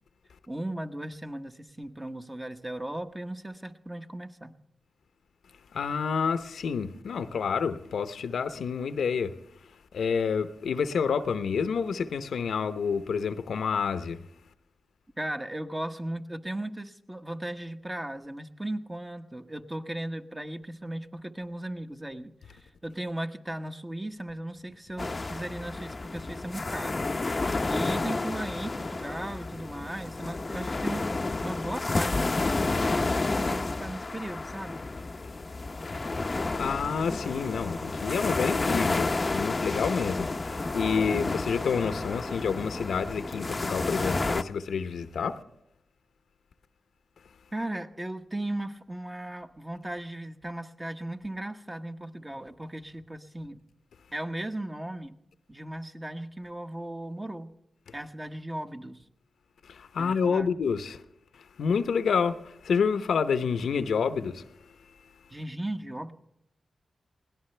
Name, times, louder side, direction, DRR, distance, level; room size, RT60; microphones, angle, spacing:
voice 1, 0.5-4.6 15.2-27.0 27.3-34.8 47.5-53.6 54.1-55.2 55.5-57.5 57.9-59.0 60.0-60.5 65.3-66.1, right 1 dB, 20° right, 1.2 m, -37 dB
voice 2, 5.7-9.4 9.6-14.2 36.3-45.4 57.9-58.0 59.6-61.0 61.3-64.4, left 6 dB, 85° left, 0.8 m, -29 dB
sound 1, 25.0-44.4, left 3 dB, 35° left, 0.7 m, -31 dB
21.0 x 17.0 x 3.3 m
cardioid pair, 60°, 0 cm